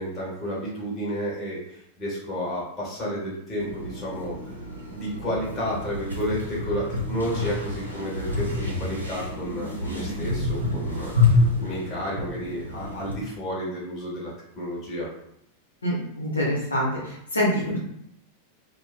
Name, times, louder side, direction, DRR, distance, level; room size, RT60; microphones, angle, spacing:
voice 1, 0.0-4.4 4.9-15.1, equal, 25° left, -6 dB, 1.1 m, -31 dB
sound 1, 3.6-13.2, left 3 dB, 85° right, 0.6 m, -28 dB
voice 2, 15.8-17.8, equal, 75° left, -6 dB, 0.8 m, -25 dB
2.5 x 2.2 x 2.4 m, 0.75 s
figure-of-eight pair, 90°, 0 cm